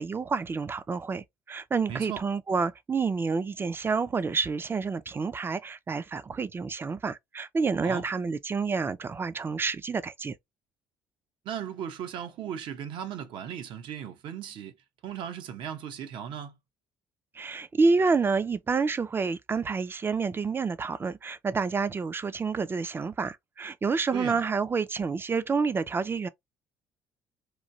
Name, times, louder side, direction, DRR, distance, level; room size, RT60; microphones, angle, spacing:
voice 1, 0.0-10.4 17.4-26.3, right 4 dB, 25° right, 0.4 m, -28 dB
voice 2, 1.9-2.2 7.8-8.0 11.4-14.7 15.0-16.6 24.1-24.4, right 9 dB, 65° right, 0.7 m, -37 dB
3.1 x 2.2 x 2.6 m
supercardioid pair, 75°, 9 cm